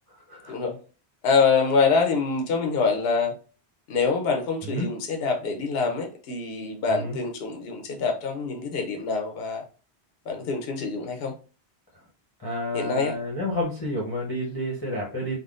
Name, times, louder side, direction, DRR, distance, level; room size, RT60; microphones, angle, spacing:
voice 1, 0.1-0.6 4.6-4.9 6.9-7.2 12.4-15.4, left 1 dB, 25° left, 0.8 m, -30 dB
voice 2, 1.2-3.3 3.9-9.6 10.3-11.3 12.7-13.1, left 4 dB, 70° left, 0.9 m, -25 dB
3.6 x 2.2 x 2.4 m
omnidirectional pair, 1.1 m